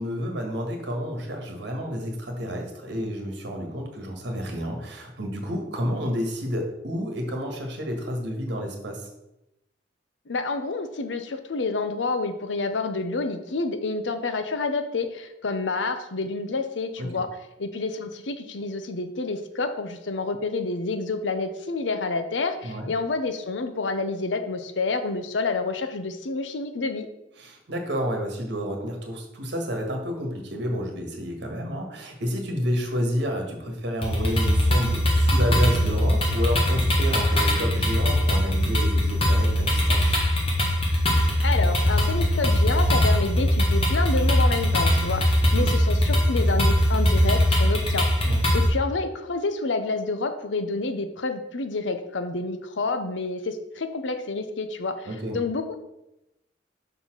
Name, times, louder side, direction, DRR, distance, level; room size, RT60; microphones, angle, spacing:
voice 1, 0.0-9.0 17.0-17.1 22.6-22.9 27.4-40.2 45.5-45.7 48.2-48.4 55.0-55.4, equal, 70° right, 3 dB, 1.4 m, -30 dB
voice 2, 10.3-17.3 17.6-27.1 41.4-48.1 48.5-55.8, left 3 dB, 85° left, 9 dB, 0.7 m, -28 dB
sound 1, 34.0-48.7, equal, 30° left, 1.6 m, -21 dB
5.7 x 4.1 x 6.0 m, 0.89 s
head